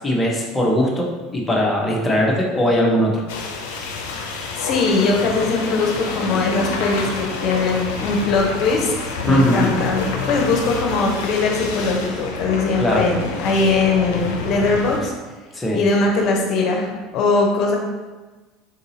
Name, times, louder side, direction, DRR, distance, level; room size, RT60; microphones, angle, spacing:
voice 1, 0.0-3.2 4.4-4.5 9.3-9.7 12.8-13.1 15.5-15.8, equal, 15° left, -1 dB, 0.8 m, -19 dB
sound 1, 3.3-15.0, left 4 dB, 80° left, 0.5 m, -28 dB
voice 2, 4.5-15.1 15.7-17.8, left 3 dB, 50° left, 0 dB, 0.8 m, -20 dB
3.8 x 2.7 x 2.7 m, 1.2 s
supercardioid pair, 95°, 0 cm